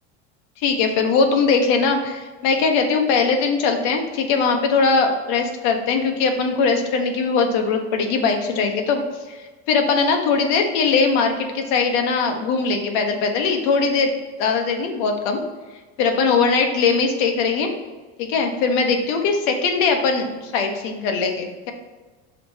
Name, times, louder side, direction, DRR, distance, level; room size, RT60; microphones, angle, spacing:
voice 1, 0.6-9.0 9.3-14.1 14.4-15.4 16.0-17.7 18.2-21.7, left 4 dB, 75° left, 4 dB, 1.2 m, -20 dB
5.8 x 4.2 x 4.9 m, 1.3 s
cardioid pair, 160°, 31 cm